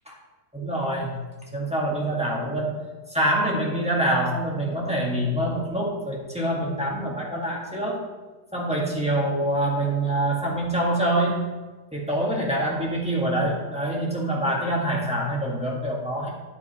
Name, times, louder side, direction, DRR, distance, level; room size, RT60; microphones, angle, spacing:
voice 1, 0.5-1.1 1.5-2.7 3.1-8.0 8.5-11.4 11.9-16.3, right 1 dB, 5° right, -4 dB, 1.5 m, -25 dB
10.0 x 8.0 x 3.0 m, 1.3 s
omnidirectional pair, 1.8 m